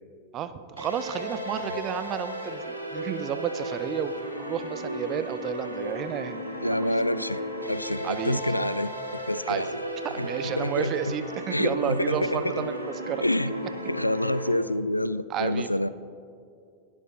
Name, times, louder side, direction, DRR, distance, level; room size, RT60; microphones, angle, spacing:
voice 1, 0.3-6.9 8.0-8.4 9.5-9.7 10.0-12.8 13.1-13.2 15.3-15.7, right 9 dB, 35° right, 12 dB, 0.6 m, -32 dB
sound 1, 0.8-14.5, equal, 90° right, 1.5 m, -35 dB
voice 2, 6.6-7.4 7.7-8.9 9.3-9.8 10.2-10.3 10.6-11.1 11.5-12.7 13.2-13.5 13.9-15.9, left 1 dB, 85° left, 16 dB, 0.3 m, -27 dB
19.0 x 13.0 x 2.8 m, 2.4 s
figure-of-eight pair, 90°, 0 cm